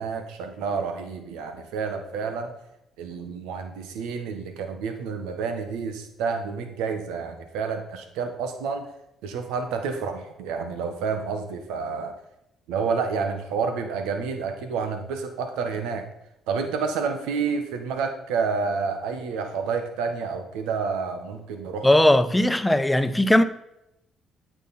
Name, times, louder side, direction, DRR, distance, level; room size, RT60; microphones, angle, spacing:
voice 1, 0.0-2.5 3.0-8.9 9.2-12.2 12.7-16.0 16.5-21.9, right 5 dB, 85° right, 1.4 m, -29 dB
voice 2, 21.8-23.4, left 1 dB, 10° left, 0.9 m, -18 dB
9.2 x 8.9 x 4.3 m
supercardioid pair, 65°, 0 cm